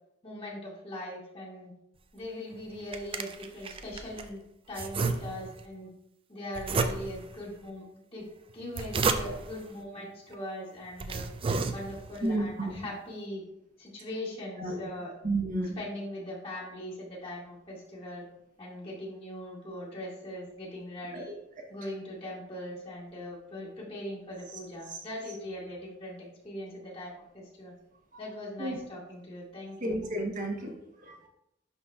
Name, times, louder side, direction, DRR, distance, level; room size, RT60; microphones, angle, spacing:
voice 1, 0.2-1.7 2.1-4.4 4.7-5.9 6.3-7.9 8.1-8.2 8.5-11.3 11.7-13.4 13.8-15.1 15.8-18.2 18.6-21.3 21.7-26.2 26.4-27.7 28.2-30.0, left 1 dB, 30° left, -5 dB, 2.1 m, -40 dB
sound 1, 2.5-4.3 4.7-5.7 6.5-7.4 8.5-9.6 10.3-10.4 10.9-12.2, right 4 dB, 30° right, 0.4 m, -32 dB
voice 2, 12.2-12.7 14.6-14.9 15.2-15.8 21.1-21.2 28.6-28.8 29.8-30.7 31.0-31.3, right 1 dB, 45° right, 1 dB, 1.0 m, -31 dB
10.5 x 4.0 x 2.3 m, 0.81 s
head